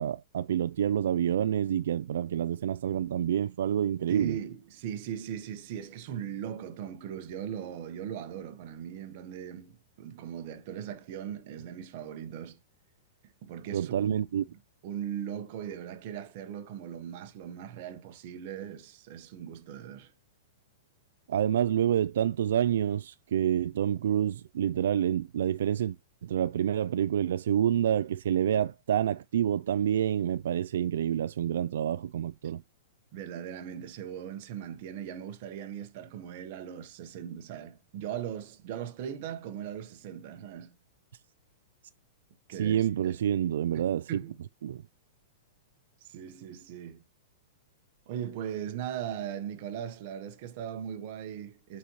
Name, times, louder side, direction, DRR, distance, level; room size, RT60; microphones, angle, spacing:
voice 1, 0.0-4.4 13.7-14.4 21.3-26.0 26.2-32.6 42.6-44.1 44.6-44.8, right 10 dB, 70° right, 0.3 m, -28 dB
voice 2, 4.1-12.6 13.4-14.2 14.5-14.6 14.8-20.1 33.1-40.8 42.5-43.2 43.7-44.4 46.0-47.0 48.1-51.8, right 9 dB, 35° right, 1.0 m, -39 dB
8.3 x 4.2 x 3.0 m
supercardioid pair, 175°, 0 cm